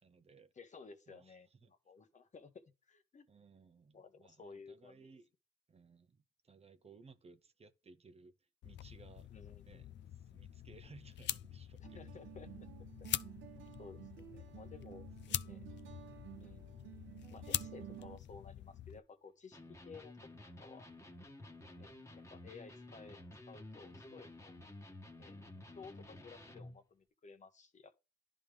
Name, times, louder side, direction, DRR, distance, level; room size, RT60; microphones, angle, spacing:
voice 1, 0.0-0.5 1.1-1.7 3.3-5.3 5.7-8.3 8.6-9.3 9.7-9.9 10.3-12.0 15.3-15.4 15.7-16.0 21.6-21.9, right 4 dB, 30° right, 0.7 m, -60 dB
voice 2, 0.6-3.3 3.9-5.1 9.3-9.9 11.8-12.7 13.2-13.3 13.8-15.1 15.4-15.6 16.4-16.6 17.3-20.1 20.6-20.9 21.8-23.2 23.5-24.6 25.2-25.4 25.7-28.0, left 4 dB, 40° left, 1.1 m, -55 dB
sound 1, 8.6-19.0, left 12 dB, 65° left, 0.5 m, -44 dB
sound 2, 11.8-18.2, right 13 dB, 75° right, 1.1 m, -53 dB
Electric guitar, 19.5-26.8, left 1 dB, 15° left, 1.4 m, -53 dB
11.0 x 3.7 x 3.3 m
cardioid pair, 90°, 20 cm